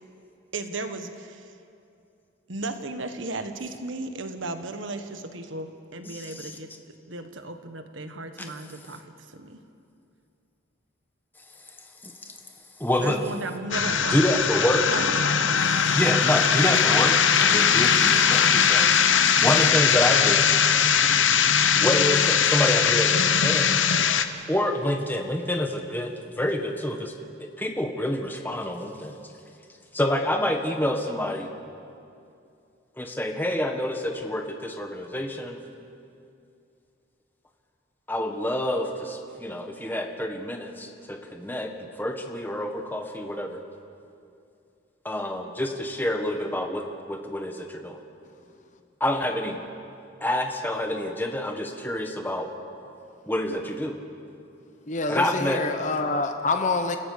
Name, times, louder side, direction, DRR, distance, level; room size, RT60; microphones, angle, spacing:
voice 1, 0.5-1.5 2.5-6.7 7.1-9.6 13.0-14.4 14.8-15.1, right 2 dB, 75° right, 7 dB, 1.5 m, -35 dB
voice 2, 6.0-6.5 8.4-8.5 12.0-12.1 12.8-13.2 14.1-14.9 15.9-18.9 19.4-20.5 21.8-23.7 24.5-27.1 27.4-29.2 29.9-31.5 33.0-35.6 38.1-41.7 42.0-43.6 45.0-48.0 49.0-49.6 50.2-52.5 53.3-54.0 55.1-55.6, left 1 dB, 10° left, 3 dB, 1.5 m, -27 dB
sound 1, 13.7-24.3, left 7 dB, 75° left, 1.0 m, -20 dB
voice 3, 54.9-57.0, left 3 dB, 40° left, 6 dB, 1.0 m, -26 dB
29.5 x 16.5 x 6.8 m, 2.5 s
head